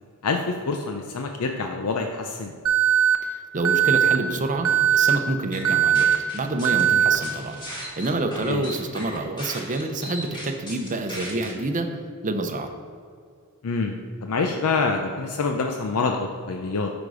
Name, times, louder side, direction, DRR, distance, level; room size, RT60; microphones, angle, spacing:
voice 1, 0.2-2.5 6.9-7.1 8.5-8.7 13.6-16.9, left 4 dB, 75° left, 4 dB, 0.6 m, -26 dB
Alarm, 2.7-3.2 3.7-4.2 4.7-5.2 5.7-6.2 6.7-7.2, right 10 dB, 80° right, 0.7 m, -19 dB
voice 2, 3.2-7.6 8.0-11.9 12.2-12.7, right 2 dB, 35° right, 6 dB, 0.7 m, -27 dB
sound 1, 4.7-5.1 5.5-6.8 7.2-11.5, equal, 20° left, 1.8 m, -37 dB
9.0 x 5.1 x 4.9 m, 2.2 s
head